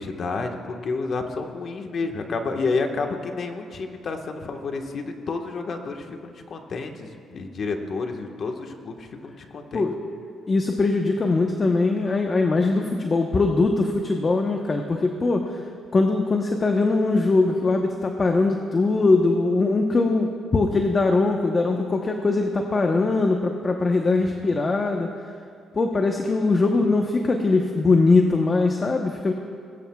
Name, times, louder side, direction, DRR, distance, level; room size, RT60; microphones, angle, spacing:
voice 1, 0.0-9.9 24.4-24.5, left 4 dB, 55° left, 3 dB, 1.4 m, -30 dB
voice 2, 10.5-15.6 15.9-25.1 25.7-29.3, left 3 dB, 35° left, 3 dB, 1.0 m, -21 dB
21.0 x 16.0 x 2.4 m, 2.2 s
cardioid pair, 90°, 0 cm